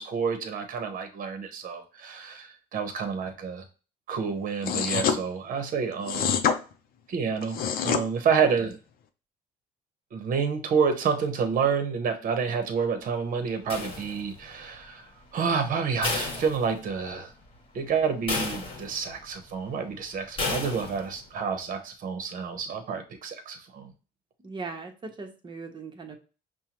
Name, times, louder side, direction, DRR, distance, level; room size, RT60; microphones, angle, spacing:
voice 1, 0.0-3.6 4.1-6.3 7.1-8.8 10.1-15.0 15.3-17.3 17.7-23.9, right 6 dB, 55° right, 7 dB, 0.9 m, -29 dB
sound 1, 4.6-5.2 6.1-6.6 7.4-8.0, left 7 dB, 60° left, 0.6 m, -25 dB
sound 2, 13.7-14.5 16.0-17.2 17.5-17.6 18.3-19.2 20.4-21.2, left 3 dB, 35° left, 1.3 m, -32 dB
voice 2, 24.4-26.2, right 4 dB, 25° right, 3 dB, 1.0 m, -39 dB
5.4 x 2.2 x 3.0 m, 0.34 s
cardioid pair, 110°, 17 cm